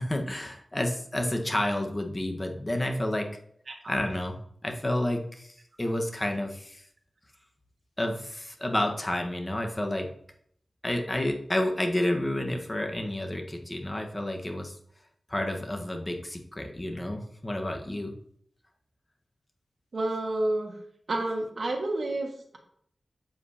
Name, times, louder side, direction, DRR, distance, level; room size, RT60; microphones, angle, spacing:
voice 1, 0.0-3.3 3.9-4.4 4.6-6.8 8.0-10.1 10.8-14.8 15.3-18.1, left 1 dB, 25° left, 3 dB, 1.3 m, -30 dB
voice 2, 19.9-20.7 21.1-22.6, right 2 dB, 70° right, 1 dB, 1.7 m, -29 dB
7.9 x 7.6 x 2.8 m, 0.66 s
cardioid pair, 50°, 0 cm